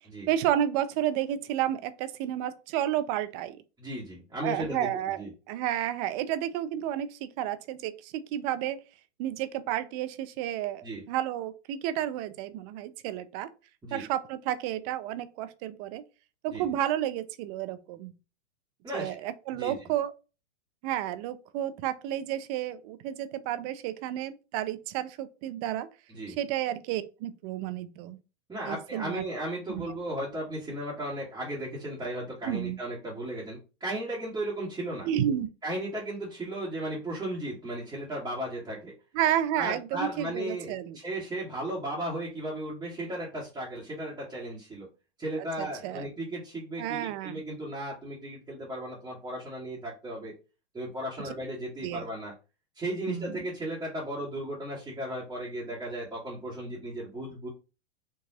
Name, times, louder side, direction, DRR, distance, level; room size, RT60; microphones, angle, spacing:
voice 1, 0.3-3.6 4.4-5.2 5.5-8.8 9.2-13.5 13.9-16.0 16.4-18.1 18.9-20.1 20.8-25.9 26.4-28.2 28.7-29.2 29.7-29.9 32.4-32.8 35.0-35.5 39.1-41.0 45.6-46.1 46.8-47.4 51.8-52.0 53.1-53.5, right 11 dB, 35° right, 0.5 m, -31 dB
voice 2, 3.8-5.3 10.8-11.0 13.8-14.1 16.5-16.7 18.8-19.9 26.1-26.4 28.5-35.1 35.6-38.9 39.6-44.9 45.2-50.3 50.7-52.3 52.7-57.5, right 1 dB, 10° right, 1.6 m, -35 dB
4.6 x 2.9 x 2.8 m
hypercardioid pair, 120°, 35 cm